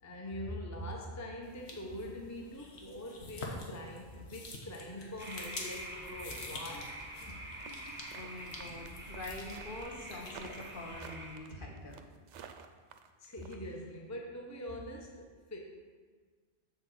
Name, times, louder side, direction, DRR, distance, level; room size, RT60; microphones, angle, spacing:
voice 1, 0.0-7.4 12.3-12.5 13.2-15.6, left 1 dB, 20° left, 0 dB, 0.7 m, -43 dB
sound 1, 1.4-11.1, left 2 dB, 70° left, 1.3 m, -48 dB
sound 2, 5.2-11.4, right 1 dB, 10° right, 0.8 m, -46 dB
voice 2, 7.6-12.0, left 1 dB, 50° left, -1 dB, 1.3 m, -45 dB
sound 3, 7.6-13.6, right 8 dB, 90° right, 0.9 m, -51 dB
7.3 x 4.0 x 6.3 m, 1.5 s
omnidirectional pair, 1.2 m